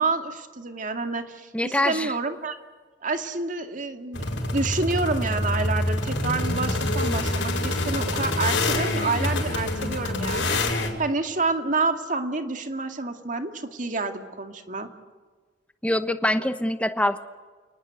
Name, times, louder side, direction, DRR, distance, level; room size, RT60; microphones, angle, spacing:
voice 1, 0.0-2.6 3.0-14.9, right 3 dB, 45° right, 6 dB, 2.1 m, -28 dB
voice 2, 1.5-2.1 15.8-17.2, left 1 dB, 5° left, 10 dB, 1.1 m, -24 dB
sound 1, 4.1-10.9, left 2 dB, 80° left, 5.5 m, -26 dB
30.0 x 19.5 x 8.2 m, 1.4 s
head